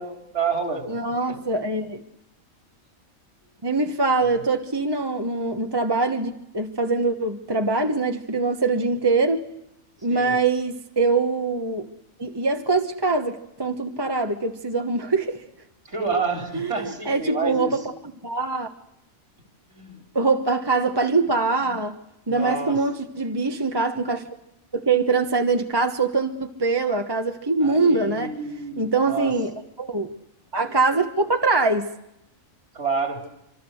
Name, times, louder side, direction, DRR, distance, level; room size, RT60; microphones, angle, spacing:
voice 1, 0.0-1.4 4.3-4.4 10.1-10.4 15.9-17.8 19.7-20.0 22.3-22.8 27.6-29.3 32.7-33.3, right 4 dB, 55° right, 2 dB, 4.4 m, -29 dB
voice 2, 0.9-2.0 3.6-9.5 10.0-11.9 12.2-15.4 16.5-17.8 18.2-18.7 20.1-22.0 22.3-24.2 24.7-28.3 28.8-30.1 30.5-31.9, right 3 dB, 20° right, 4 dB, 1.2 m, -23 dB
26.0 x 25.5 x 6.5 m, 0.84 s
omnidirectional pair, 1.4 m